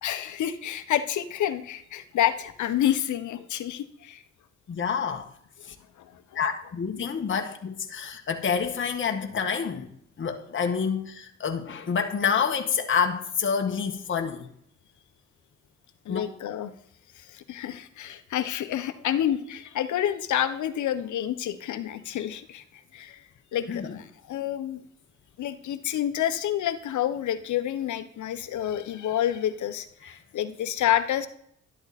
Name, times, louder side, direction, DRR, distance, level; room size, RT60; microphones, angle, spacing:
voice 1, 0.0-4.2 6.0-6.1 16.0-16.7 17.3-22.6 22.9-23.2 23.5-24.8 25.4-31.3, left 11 dB, 75° left, 1.3 m, -28 dB
voice 2, 4.7-5.3 5.6-5.7 6.3-9.9 10.2-14.5 16.1-16.2 23.7-24.0 30.0-30.1, left 6 dB, 40° left, 1.7 m, -28 dB
12.5 x 12.0 x 4.3 m
cardioid pair, 90°, 30 cm